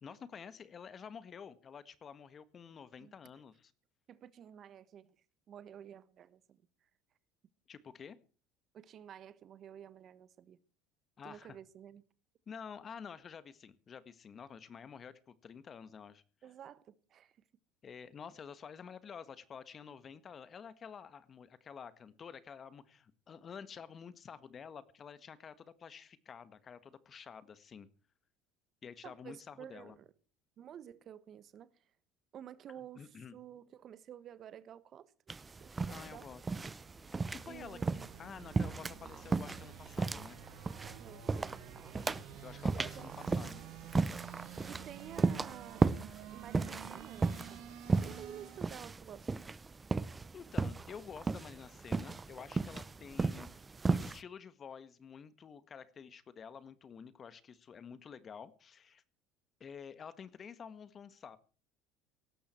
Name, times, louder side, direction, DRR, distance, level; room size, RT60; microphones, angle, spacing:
voice 1, 0.0-3.7 7.7-8.2 11.2-11.6 12.5-16.2 17.8-27.9 28.8-30.0 33.0-33.3 35.9-36.6 37.1-37.8 38.2-40.4 42.4-43.6 50.1-59.0 59.6-61.4, left 7 dB, 40° left, 1.6 m, -50 dB
voice 2, 4.1-5.2 5.5-6.6 8.7-10.6 11.2-12.0 16.4-17.4 29.0-30.1 30.6-31.7 32.3-35.1 35.6-36.3 37.5-38.1 41.0-41.6 42.7-43.5 44.7-45.9 46.3-47.6 48.0-49.3, right 9 dB, 50° right, 1.3 m, -51 dB
sound 1, 35.3-54.2, right 4 dB, 20° right, 0.8 m, -35 dB
sound 2, 36.8-48.9, right 12 dB, 75° right, 1.8 m, -51 dB
17.5 x 13.5 x 4.5 m
supercardioid pair, 85°, 0 cm